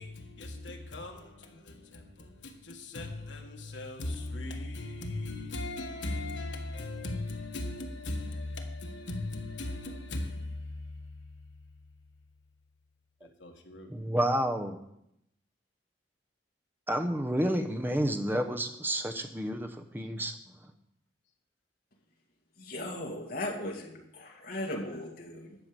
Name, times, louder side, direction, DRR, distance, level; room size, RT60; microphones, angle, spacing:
voice 1, 0.0-12.1 13.2-13.9, left 2 dB, 75° left, 1.6 m, -38 dB
voice 2, 13.9-14.8 16.9-20.3 20.6-20.7, right 1 dB, 10° right, 0.8 m, -30 dB
voice 3, 22.6-25.6, left 1 dB, 55° left, 2.2 m, -37 dB
11.5 x 5.7 x 8.0 m
head